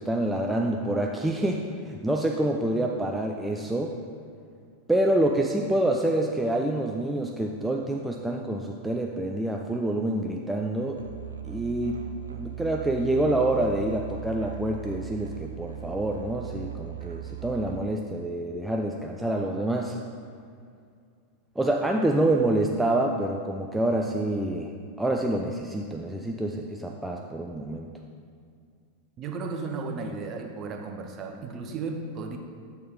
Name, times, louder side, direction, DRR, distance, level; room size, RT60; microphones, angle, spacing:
voice 1, 0.0-3.9 4.9-11.0 11.4-12.0 12.3-20.0 21.6-24.7 25.0-27.9, right 1 dB, 5° right, 1 dB, 0.4 m, -27 dB
Musical instrument, 10.9-17.8, right 14 dB, 70° right, 0.4 m, -39 dB
voice 2, 29.2-32.4, right 4 dB, 30° right, 3 dB, 0.7 m, -34 dB
8.3 x 4.2 x 3.7 m, 2.3 s
figure-of-eight pair, 90°, 0 cm